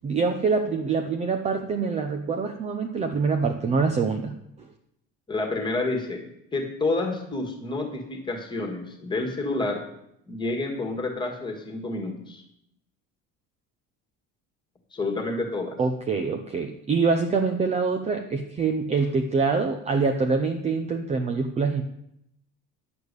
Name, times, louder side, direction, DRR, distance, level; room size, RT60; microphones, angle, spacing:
voice 1, 0.0-4.3 15.8-21.8, right 4 dB, 20° right, 5 dB, 0.6 m, -25 dB
voice 2, 5.3-6.2 6.5-9.8 10.3-12.4 14.9-15.8, left 2 dB, 15° left, 3 dB, 1.7 m, -29 dB
10.5 x 6.9 x 8.2 m, 0.78 s
cardioid pair, 180°, 33 cm